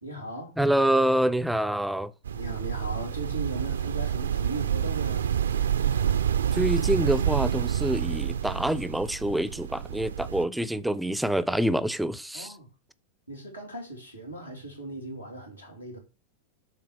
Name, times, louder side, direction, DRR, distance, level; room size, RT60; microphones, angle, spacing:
voice 1, 0.0-0.5 2.3-5.3 12.3-12.7 13.3-16.0, right 1 dB, 90° left, 2.8 m, -38 dB
voice 2, 0.6-2.1 6.5-12.5, right 1 dB, 5° right, 0.5 m, -26 dB
sound 1, 2.2-10.4, right 9 dB, 65° right, 0.5 m, -28 dB
7.3 x 3.7 x 6.0 m
figure-of-eight pair, 90°, 0 cm